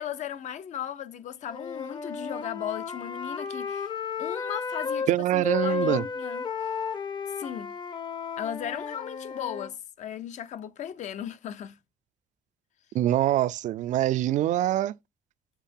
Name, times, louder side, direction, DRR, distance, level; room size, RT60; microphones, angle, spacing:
voice 1, 0.0-3.9 4.2-6.5 7.4-7.7 8.4-11.8, left 9 dB, 70° left, 0.8 m, -36 dB
Wind instrument woodwind instrument, 1.5-5.1 5.4-9.7, left 6 dB, 35° left, 0.7 m, -33 dB
voice 2, 5.1-6.0 12.9-14.9, right 13 dB, 75° right, 0.4 m, -24 dB
7.3 x 4.6 x 3.5 m
cardioid pair, 155°, 13 cm